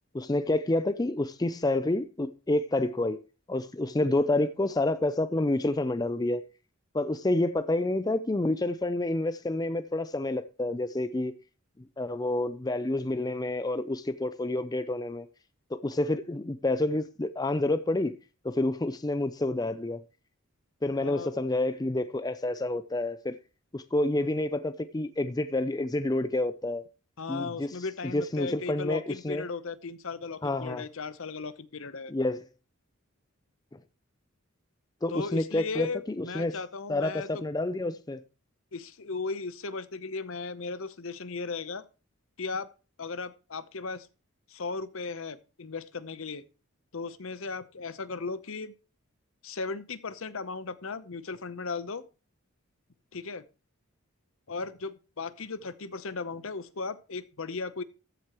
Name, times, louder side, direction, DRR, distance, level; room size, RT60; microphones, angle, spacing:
voice 1, 0.1-3.2 3.5-6.4 6.9-11.3 11.8-15.3 15.7-18.1 18.4-20.0 20.8-23.4 23.7-26.8 27.3-27.7 28.1-29.5 30.4-30.8 32.1-32.4 35.0-36.6 36.9-38.2, left 2 dB, 15° left, 0.4 m, -28 dB
voice 2, 21.0-21.4 27.2-32.1 35.1-37.3 38.7-41.8 42.4-42.7 43.0-44.1 44.5-46.4 46.9-48.7 49.4-52.0 53.1-53.4 54.5-57.8, left 4 dB, 65° left, 0.8 m, -36 dB
14.0 x 7.9 x 3.0 m
head